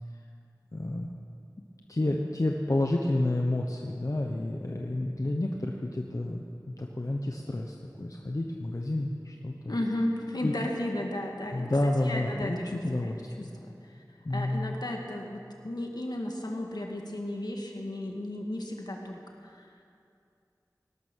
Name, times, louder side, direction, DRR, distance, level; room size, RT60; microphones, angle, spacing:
voice 1, 0.7-1.1 1.9-6.4 6.7-9.8 10.4-10.5 11.5-13.5 14.2-14.8, left 1 dB, 55° left, 1 dB, 1.0 m, -30 dB
voice 2, 9.7-11.7 12.0-13.1 13.4-13.8 14.3-19.7, left 1 dB, 75° left, 1 dB, 2.0 m, -34 dB
18.0 x 12.0 x 6.4 m, 2.5 s
wide cardioid pair, 45°, 7 cm